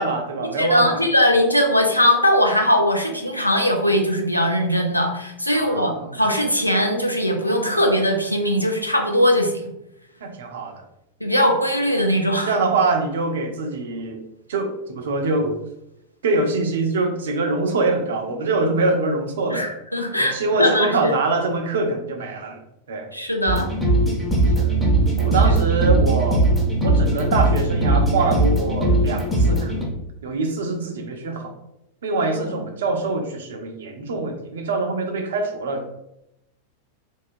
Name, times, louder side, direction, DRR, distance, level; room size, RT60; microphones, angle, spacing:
voice 1, 0.0-1.0 5.5-6.2 10.2-10.7 12.5-14.2 14.5-15.6 16.2-19.7 20.2-22.6 22.9-23.1 24.6-24.7 25.2-26.5 26.8-29.8 30.2-31.5 32.0-35.9, right 3 dB, 60° right, 4 dB, 0.4 m, -24 dB
voice 2, 0.6-9.7 11.2-12.6 19.5-21.1 23.1-23.7 25.4-25.6 32.3-32.4, equal, 90° left, 3 dB, 0.4 m, -20 dB
sound 1, 23.5-29.8, right 2 dB, ahead, 0.7 m, -19 dB
2.6 x 2.3 x 2.6 m, 0.83 s
figure-of-eight pair, 90°, 0 cm